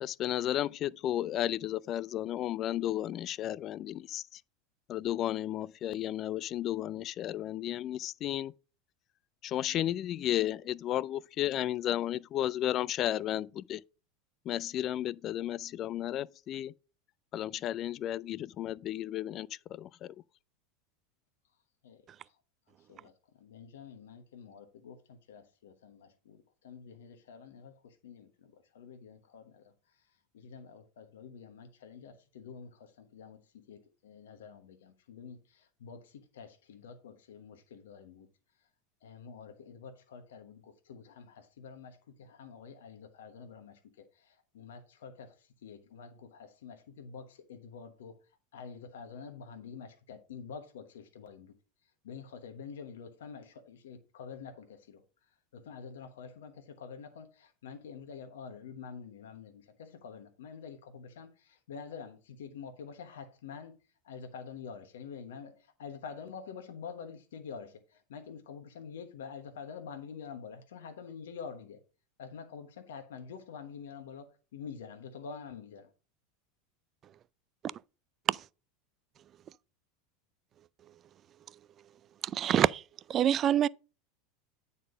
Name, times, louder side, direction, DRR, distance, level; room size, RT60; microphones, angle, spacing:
voice 1, 0.0-4.4 4.9-8.5 9.4-13.8 14.5-16.7 17.3-20.1, left 12 dB, 45° left, 0.3 m, -33 dB
voice 2, 21.8-22.4 22.7-38.3 39.0-48.2 48.5-51.5 51.8-55.0 55.5-63.8 64.0-71.8 72.2-75.9, left 6 dB, 75° left, 1.1 m, -47 dB
voice 3, 82.2-82.8 83.1-83.7, right 10 dB, 40° right, 0.3 m, -25 dB
9.3 x 4.2 x 5.1 m
hypercardioid pair, 90°, 0 cm